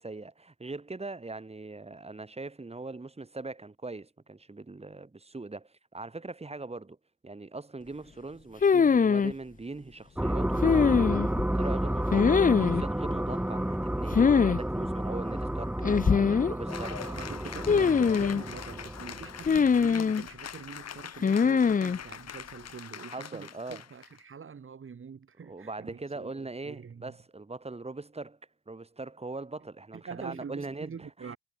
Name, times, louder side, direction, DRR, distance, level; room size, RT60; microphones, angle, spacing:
voice 1, 0.0-7.0 7.2-10.7 11.5-17.1 23.0-23.8 25.4-28.4 28.7-31.3, right 3 dB, 20° right, 4.7 m, -41 dB
sound 1, 8.6-9.3 10.6-11.4 12.1-12.8 14.1-14.6 14.8-14.9 15.8-16.5 17.7-18.4 19.5-20.2 21.2-22.0, left 6 dB, 25° left, 0.8 m, -22 dB
sound 2, 10.2-20.0, right 1 dB, 5° right, 3.3 m, -31 dB
Cheering / Applause, 16.7-24.2, left 8 dB, 55° left, 6.5 m, -43 dB
voice 2, 17.0-27.1 29.9-31.4, right 6 dB, 45° right, 6.6 m, -44 dB
cardioid pair, 90°, 30 cm